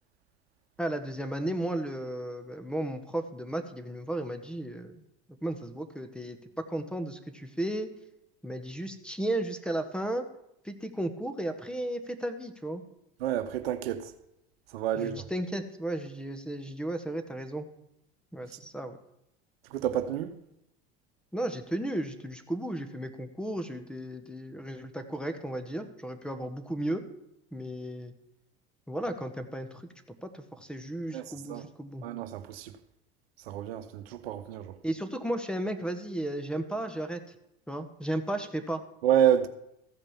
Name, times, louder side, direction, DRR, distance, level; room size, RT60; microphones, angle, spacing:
voice 1, 0.8-5.0 5.4-7.9 8.4-10.2 10.6-12.8 15.0-17.7 18.3-19.0 21.3-27.0 27.5-28.1 28.9-29.9 30.2-32.1 34.8-37.2 37.7-38.8, right 1 dB, 5° left, 1.3 m, -34 dB
voice 2, 13.2-14.1 14.7-15.3 19.7-20.3 31.1-31.7 32.0-32.7 33.5-34.7 39.0-39.5, right 10 dB, 80° right, 0.9 m, -28 dB
14.5 x 5.2 x 7.2 m
hypercardioid pair, 85°, 30 cm